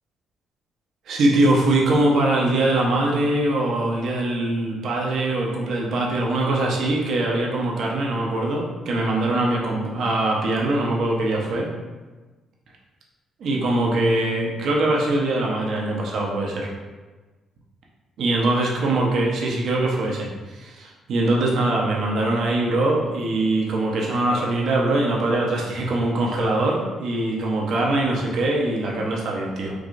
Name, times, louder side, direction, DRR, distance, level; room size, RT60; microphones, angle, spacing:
voice 1, 1.1-11.7 13.4-16.7 18.2-29.7, right 2 dB, 70° right, -2 dB, 0.7 m, -22 dB
4.7 x 2.4 x 2.5 m, 1.2 s
cardioid pair, 90°, 0 cm